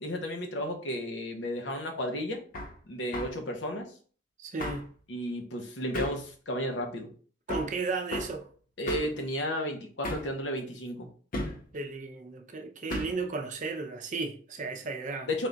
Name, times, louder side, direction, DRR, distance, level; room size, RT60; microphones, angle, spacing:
voice 1, 0.0-2.4 2.9-3.9 5.1-7.1 8.8-11.1 15.3-15.5, equal, 80° left, 0.8 m, -33 dB
Hammer, 2.5-2.7 3.1-3.4 4.6-4.9 5.9-6.3 7.5-7.8 8.1-8.4 8.9-9.2 10.0-10.4 11.3-11.7 12.9-13.2, left 1 dB, 50° left, 0.6 m, -34 dB
voice 2, 4.4-4.9 7.5-8.5 11.7-15.3, right 4 dB, 45° right, 0.5 m, -34 dB
3.5 x 2.3 x 3.8 m
head